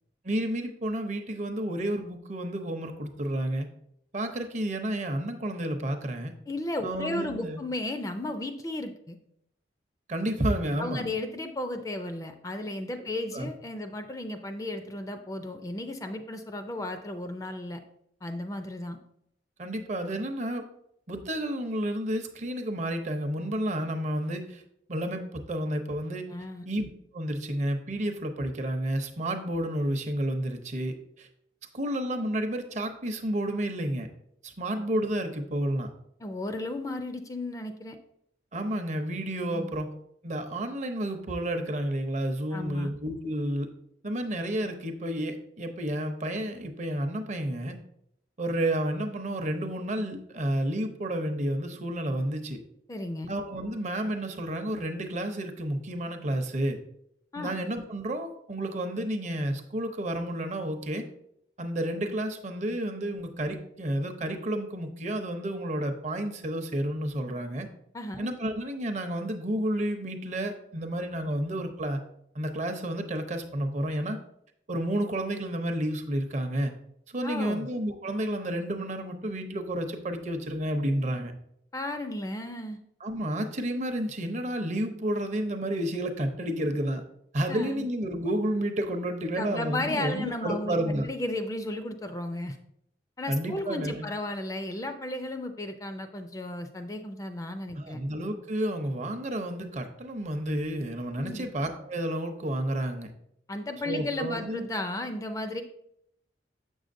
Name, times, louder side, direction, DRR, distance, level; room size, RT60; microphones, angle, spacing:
voice 1, 0.2-3.7 4.1-6.3 6.8-7.6 10.1-11.0 13.0-13.1 13.3-13.5 19.6-20.6 21.1-24.6 24.9-26.3 26.7-26.9 27.1-31.3 31.7-34.1 34.4-35.9 38.5-39.9 40.2-43.7 44.0-47.8 48.4-52.6 53.3-56.8 57.4-61.0 61.6-67.7 68.2-72.0 72.3-74.2 74.7-76.7 77.1-81.3 83.0-87.0 87.3-91.1 93.3-94.1 97.7-103.1 103.9-104.7, right 1 dB, 40° right, 6 dB, 0.6 m, -31 dB
voice 2, 6.5-9.2 10.8-17.8 18.2-19.0 26.3-26.7 36.2-38.0 39.5-39.7 42.5-42.9 52.9-53.3 57.3-57.6 67.9-68.3 77.2-77.7 81.7-82.8 87.5-87.9 89.3-92.6 93.2-98.0 101.2-101.5 103.5-105.6, left 1 dB, 20° left, 7 dB, 0.4 m, -34 dB
7.0 x 6.2 x 2.6 m, 0.74 s
head